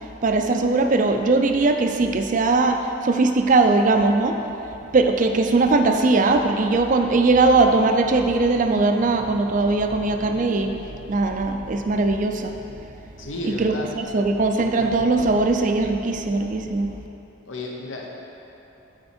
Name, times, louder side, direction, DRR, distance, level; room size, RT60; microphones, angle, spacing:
voice 1, 0.2-4.4 4.9-17.0, right 3 dB, 40° right, 6 dB, 0.4 m, -20 dB
voice 2, 13.2-13.9 17.5-18.2, left 2 dB, 80° left, -1 dB, 0.9 m, -32 dB
8.8 x 4.4 x 4.3 m, 3.0 s
head